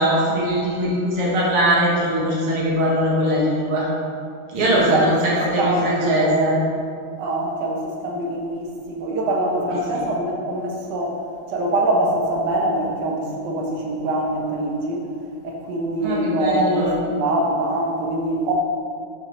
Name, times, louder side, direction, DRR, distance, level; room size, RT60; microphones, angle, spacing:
voice 1, 0.0-3.9 4.5-5.1 5.5-6.5 16.0-16.9, equal, 80° right, -5 dB, 2.2 m, -21 dB
voice 2, 4.6-6.6 7.2-11.2 11.5-15.1 15.4-18.5, right 1 dB, 60° right, -1 dB, 1.4 m, -24 dB
6.5 x 3.7 x 6.0 m, 2.3 s
omnidirectional pair, 2.4 m